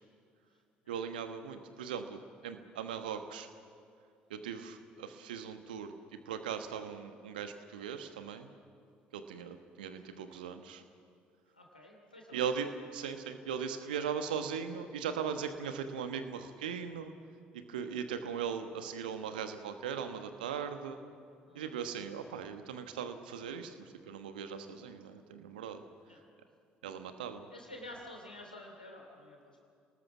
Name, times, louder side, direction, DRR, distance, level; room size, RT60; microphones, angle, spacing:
voice 1, 0.9-3.5 4.3-5.9 6.3-8.5 9.1-10.8 12.3-17.1 17.5-21.0 21.5-23.7 24.1-25.8 26.8-27.5, right 7 dB, 75° right, 8 dB, 1.3 m, -39 dB
voice 2, 11.5-12.4 21.4-21.7 26.1-26.2 27.5-29.6, left 1 dB, 90° left, 1 dB, 2.9 m, -50 dB
28.5 x 19.0 x 6.1 m, 2.4 s
figure-of-eight pair, 50°, 5 cm